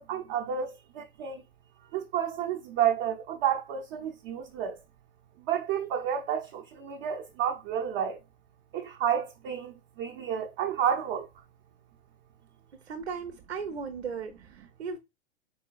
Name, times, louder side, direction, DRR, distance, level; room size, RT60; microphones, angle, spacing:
voice 1, 0.0-1.4 1.9-4.8 5.4-8.2 8.7-11.3, right 9 dB, 35° right, 0.7 m, -30 dB
voice 2, 12.8-15.0, right 5 dB, 75° right, 0.8 m, -37 dB
4.3 x 3.8 x 2.3 m
figure-of-eight pair, 100°, 33 cm